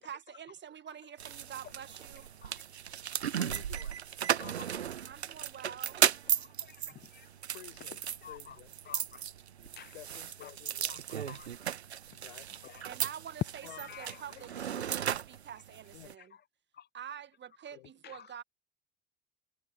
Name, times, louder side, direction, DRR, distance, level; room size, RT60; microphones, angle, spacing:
voice 1, 0.0-2.3 5.0-6.0 12.8-16.3 16.9-18.4, right 9 dB, 35° right, 1.7 m, -47 dB
sound 1, 1.2-16.1, right 9 dB, 80° right, 1.3 m, -36 dB
voice 2, 3.4-4.0 7.5-8.8 9.9-11.0 12.1-12.6 13.6-14.0 14.3-14.9 15.9-16.2 17.7-17.9, left 18 dB, 70° left, 5.9 m, -53 dB
voice 3, 4.3-4.7 6.6-6.8 7.1-7.3 8.2-8.5 8.9-9.2 9.8-9.9 10.4-10.5 10.9-11.5 13.7-14.2 16.8-16.9 18.0-18.2, left 9 dB, 30° left, 0.8 m, -49 dB
figure-of-eight pair, 60°, 32 cm